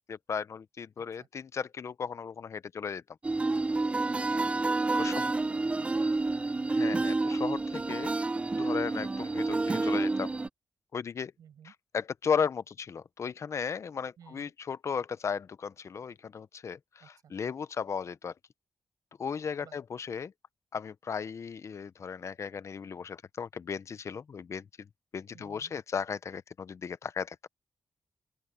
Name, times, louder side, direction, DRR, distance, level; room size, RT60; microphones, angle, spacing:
voice 1, 0.1-3.0 4.9-5.2 6.7-8.1 8.5-10.3 10.9-11.3 11.6-18.3 19.2-20.3 20.7-24.6 25.1-27.5, left 6 dB, 55° left, 0.7 m, -35 dB
sound 1, 3.2-10.5, right 3 dB, 20° right, 0.3 m, -29 dB
voice 2, 4.3-6.3 7.4-7.7 11.4-11.7 14.2-14.5 17.0-17.3 19.6-19.8 25.3-25.7, right 9 dB, 85° right, 7.7 m, -54 dB
open air
cardioid pair, 80°, 6 cm